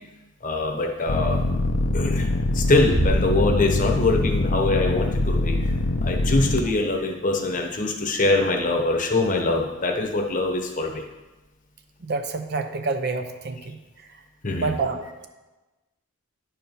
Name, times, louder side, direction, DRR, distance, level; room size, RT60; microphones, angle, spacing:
voice 1, 0.4-1.4 1.9-5.7 6.0-11.0 14.4-14.7, left 2 dB, 35° left, 3 dB, 1.0 m, -23 dB
sound 1, 1.1-6.6, left 2 dB, 75° left, 0.7 m, -23 dB
Bass drum, 2.9-4.4, right 1 dB, 5° right, 0.9 m, -27 dB
voice 2, 12.0-13.8 14.6-15.3, right 3 dB, 50° right, 7 dB, 0.6 m, -28 dB
10.0 x 4.6 x 5.4 m, 1.1 s
head